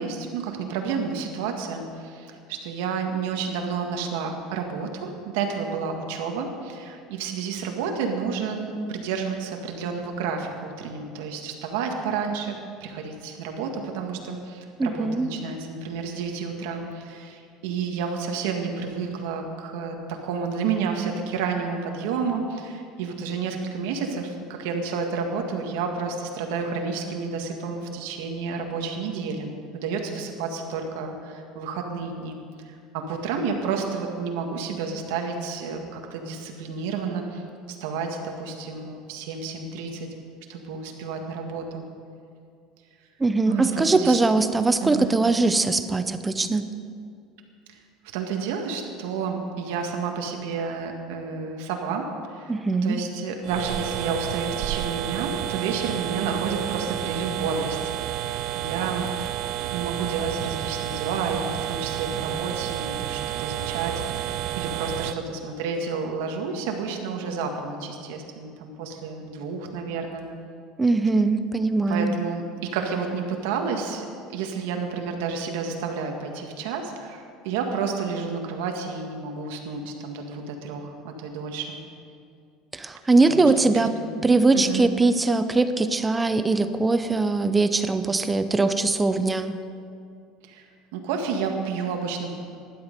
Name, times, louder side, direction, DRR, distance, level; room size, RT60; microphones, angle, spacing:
voice 1, 0.0-12.6 12.8-32.4 32.7-37.4 37.7-40.1 40.5-41.8 43.5-44.2 44.8-45.2 48.1-52.6 52.8-59.1 59.7-70.3 71.9-81.8 83.3-83.7 84.0-84.2 84.5-84.8 90.5-92.3, right 5 dB, 85° right, 3 dB, 1.8 m, -30 dB
voice 2, 14.8-15.3 43.2-46.6 52.5-53.0 70.8-72.2 82.7-83.9 84.2-89.5, right 3 dB, 10° right, 10 dB, 0.6 m, -21 dB
sound 1, 53.4-65.1, right 12 dB, 55° right, 0.5 m, -30 dB
16.0 x 11.5 x 5.3 m, 2.3 s
cardioid pair, 145°, 0 cm